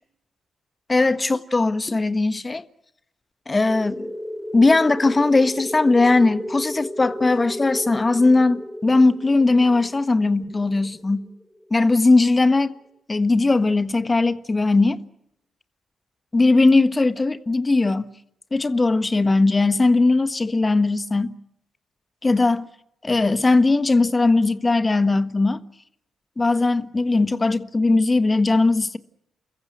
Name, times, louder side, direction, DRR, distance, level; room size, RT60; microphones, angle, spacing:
voice 1, 0.9-2.6 3.5-4.1 4.5-11.3 11.7-12.7 13.1-15.0 16.3-18.1 18.5-21.3 22.2-22.7 23.0-25.6 26.4-29.0, left 3 dB, 30° left, 1.5 m, -19 dB
sound 1, 3.7-12.0, equal, ahead, 3.5 m, -34 dB
29.0 x 15.0 x 9.4 m
hypercardioid pair, 40°, 0 cm